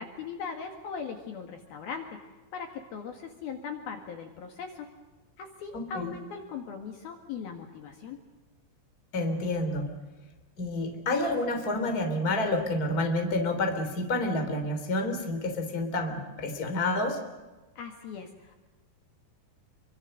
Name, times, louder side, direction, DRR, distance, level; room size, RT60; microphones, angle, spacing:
voice 1, 0.0-2.2 2.5-4.9 5.4-8.2 17.8-18.6, left 6 dB, 60° left, 4 dB, 3.3 m, -39 dB
voice 2, 5.7-6.1 9.1-9.9 10.6-17.2, left 2 dB, 25° left, 5 dB, 3.1 m, -29 dB
27.5 x 24.5 x 6.5 m, 1.2 s
omnidirectional pair, 5.3 m